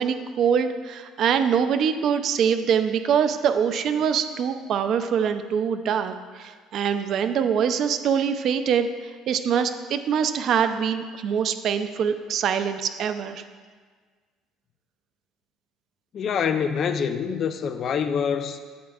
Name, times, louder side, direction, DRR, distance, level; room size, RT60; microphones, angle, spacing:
voice 1, 0.0-13.4, right 7 dB, 55° right, 8 dB, 0.5 m, -24 dB
voice 2, 16.1-18.6, left 7 dB, 45° left, 8 dB, 0.5 m, -25 dB
11.0 x 8.7 x 2.4 m, 1.5 s
cardioid pair, 125°, 0 cm